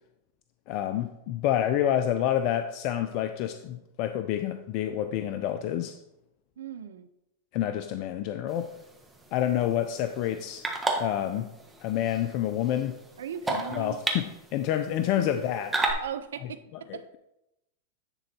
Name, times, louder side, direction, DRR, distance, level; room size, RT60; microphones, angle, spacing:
voice 1, 0.7-5.9 7.5-8.7 9.3-10.7 11.0-11.5 11.8-13.0 13.7-15.7 16.9-17.2, left 11 dB, 50° left, 8 dB, 0.5 m, -28 dB
voice 2, 6.6-7.1 13.2-14.0 15.2-15.3 16.0-17.1, right 9 dB, 80° right, 12 dB, 0.6 m, -38 dB
sound 1, 8.5-15.9, right 2 dB, 10° right, 1.5 m, -35 dB
10.5 x 3.9 x 4.4 m, 0.87 s
hypercardioid pair, 105°, 0 cm